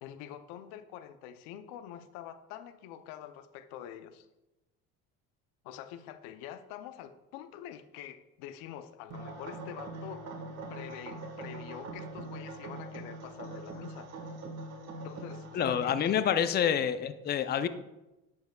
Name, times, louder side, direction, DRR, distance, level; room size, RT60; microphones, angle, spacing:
voice 1, 0.0-4.3 5.6-10.3 10.7-14.1 15.0-16.0 16.6-16.9, left 10 dB, 80° left, 11 dB, 0.6 m, -46 dB
sound 1, 9.1-16.2, right 2 dB, 50° right, 1.6 m, -42 dB
voice 2, 15.5-17.7, left 8 dB, 30° left, 12 dB, 0.5 m, -28 dB
9.3 x 7.2 x 2.3 m, 0.99 s
supercardioid pair, 85°, 33 cm